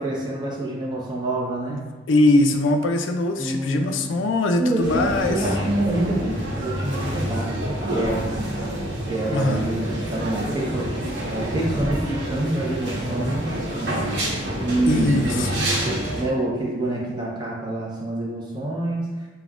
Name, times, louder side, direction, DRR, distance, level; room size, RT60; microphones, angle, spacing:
voice 1, 0.0-1.8 3.4-4.1 4.6-8.6 9.0-10.9 11.3-14.1 14.6-19.1, right 1 dB, 20° right, -4 dB, 0.7 m, -27 dB
voice 2, 2.1-5.5 9.3-9.7 14.9-15.7, left 2 dB, 75° left, 5 dB, 0.4 m, -21 dB
sound 1, 4.8-16.2, right 1 dB, 60° right, 1.0 m, -28 dB
6.7 x 2.3 x 2.4 m, 1.3 s
head